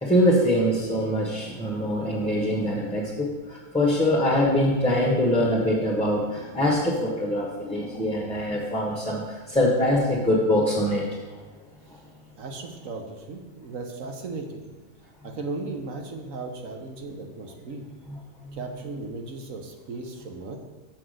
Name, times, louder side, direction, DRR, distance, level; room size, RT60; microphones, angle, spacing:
voice 1, 0.0-11.1 11.3-11.4, left 1 dB, 5° left, -5 dB, 1.1 m, -23 dB
voice 2, 12.4-14.7 15.2-17.8 18.5-20.6, right 3 dB, 70° right, 3 dB, 1.4 m, -36 dB
6.8 x 5.9 x 6.4 m, 1.2 s
omnidirectional pair, 1.4 m